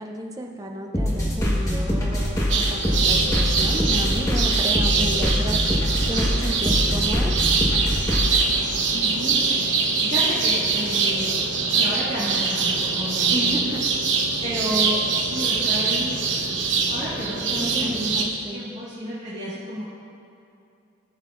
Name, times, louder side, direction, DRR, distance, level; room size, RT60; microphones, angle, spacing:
voice 1, 0.0-7.3 13.3-13.8 17.5-18.6, equal, 20° right, 2 dB, 0.6 m, -32 dB
sound 1, 0.9-8.4, equal, 15° left, 1.3 m, -23 dB
sound 2, 2.5-18.2, right 4 dB, 80° right, 0.9 m, -23 dB
voice 2, 8.9-11.3 11.7-13.8 14.4-16.2 16.9-18.2 18.5-19.8, equal, 40° right, -10 dB, 1.7 m, -31 dB
16.5 x 6.4 x 2.5 m, 2.6 s
head